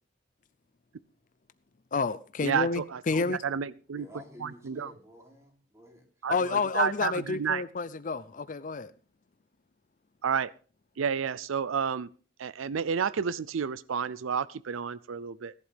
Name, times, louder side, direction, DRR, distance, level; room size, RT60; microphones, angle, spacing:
voice 1, 1.9-3.4 6.3-8.9, left 4 dB, 40° left, 0.5 m, -29 dB
voice 2, 2.4-4.1 4.4-4.9 6.2-7.6 10.2-10.5 11.0-12.1 12.4-15.5, right 7 dB, 90° right, 0.5 m, -31 dB
voice 3, 3.9-6.7, equal, 15° right, 3.3 m, -51 dB
17.0 x 11.5 x 3.5 m
head